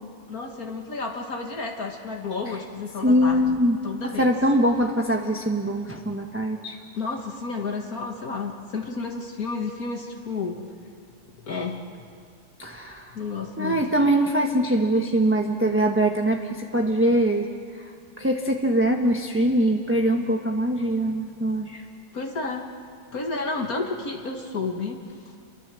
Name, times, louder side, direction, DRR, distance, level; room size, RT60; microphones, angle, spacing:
voice 1, 0.3-3.6 3.8-4.3 7.0-10.6 11.4-11.8 12.7-12.9 13.1-13.9 22.1-22.7 23.1-25.0 25.3-25.4, left 4 dB, 60° left, 1 dB, 2.0 m, -31 dB
voice 2, 3.0-3.8 4.1-6.8 12.6-13.1 13.6-17.5 17.7-17.9 18.2-21.8, right 1 dB, 10° right, 1 dB, 1.1 m, -22 dB
28.0 x 23.0 x 7.6 m, 2.2 s
omnidirectional pair, 1.7 m